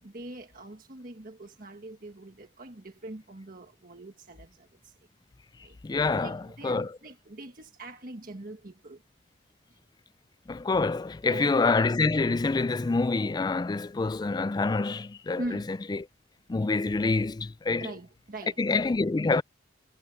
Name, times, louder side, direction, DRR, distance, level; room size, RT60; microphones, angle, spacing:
voice 1, 0.0-4.9 5.6-5.8 6.1-9.0 11.2-11.5 15.4-15.7 17.8-18.6, right 1 dB, 50° right, 1.6 m, -42 dB
voice 2, 5.8-6.9 10.5-16.1 16.5-17.9 18.6-19.4, left 3 dB, 25° left, 0.3 m, -26 dB
head